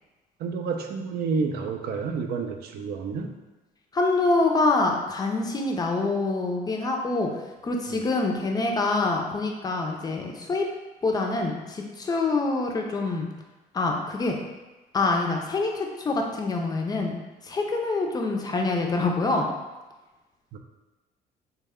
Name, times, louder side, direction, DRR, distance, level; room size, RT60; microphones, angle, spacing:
voice 1, 0.4-3.3 20.5-20.6, right 5 dB, 65° right, 4 dB, 0.4 m, -29 dB
voice 2, 3.9-7.3 7.6-10.7 11.0-13.3 13.7-14.4 14.9-17.2 17.4-19.5, left 3 dB, 25° left, 1 dB, 0.5 m, -25 dB
3.2 x 2.2 x 3.5 m, 1.1 s
cardioid pair, 110°, 17 cm